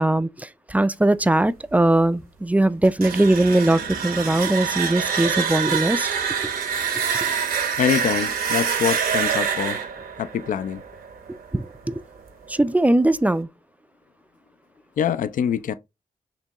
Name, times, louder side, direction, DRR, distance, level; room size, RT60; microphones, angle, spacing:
voice 1, 0.0-6.1 11.5-12.0 12.5-13.5, right 1 dB, 10° right, 0.3 m, -20 dB
sound 1, 2.8-11.7, right 7 dB, 80° right, 0.8 m, -26 dB
voice 2, 7.8-9.8 10.2-10.8 15.0-15.7, left 8 dB, 65° left, 0.4 m, -24 dB
4.4 x 3.0 x 2.9 m
cardioid pair, 60°, 15 cm